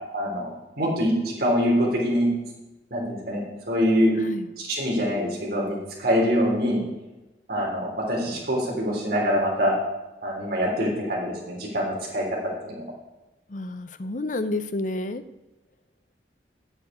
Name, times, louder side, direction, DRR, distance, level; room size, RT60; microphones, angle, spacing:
voice 1, 0.1-0.5 0.8-2.3 2.9-4.1 4.7-6.8 7.5-9.7 10.2-12.3 12.6-12.8, equal, 55° right, -3 dB, 3.5 m, -24 dB
voice 2, 13.5-15.2, left 2 dB, 45° left, 12 dB, 0.7 m, -30 dB
8.1 x 7.0 x 8.5 m, 1.0 s
head